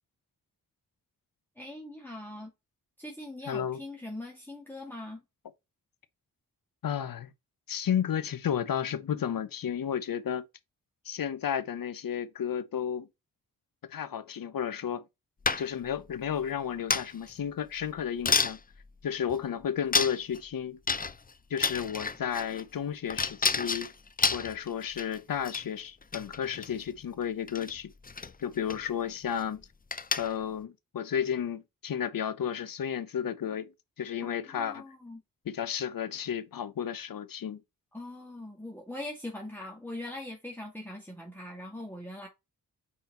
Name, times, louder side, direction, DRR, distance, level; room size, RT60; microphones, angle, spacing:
voice 1, 1.6-2.5 3.0-5.2 34.2-35.2 37.9-42.3, left 1 dB, 5° left, 2.1 m, -41 dB
voice 2, 3.5-3.8 6.8-7.3 7.7-10.4 11.0-13.1 13.8-15.0 15.6-18.6 19.0-20.8 21.5-23.9 24.3-27.9 28.4-29.7 30.2-33.7 34.0-34.8 35.5-37.6, left 8 dB, 65° left, 0.9 m, -32 dB
sound 1, 15.4-15.9 16.9-17.3 17.8-17.9 18.2-18.6 19.3-19.4 19.9-20.4 20.9-21.3 21.6-22.6 23.1-25.2 25.4-25.6 26.0-26.7 27.5-27.7 28.0-28.3 28.7-28.9 29.2-29.4 29.9-30.4, left 4 dB, 25° left, 0.6 m, -29 dB
5.4 x 4.3 x 4.3 m
cardioid pair, 50°, 37 cm